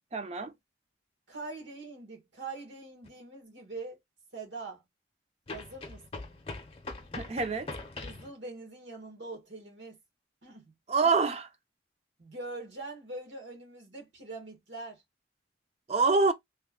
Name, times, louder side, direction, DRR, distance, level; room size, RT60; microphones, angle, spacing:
voice 1, 0.1-0.5 7.1-7.7 10.9-11.5 15.9-16.3, right 4 dB, 35° right, 0.5 m, -26 dB
voice 2, 1.3-4.0 4.3-4.8 5.5-6.3 8.0-10.0 10.4-10.7 12.2-15.0, right 3 dB, 75° right, 1.3 m, -43 dB
sound 1, 3.0-3.1 5.5-8.3, left 3 dB, 30° left, 0.6 m, -42 dB
3.1 x 2.2 x 3.5 m
head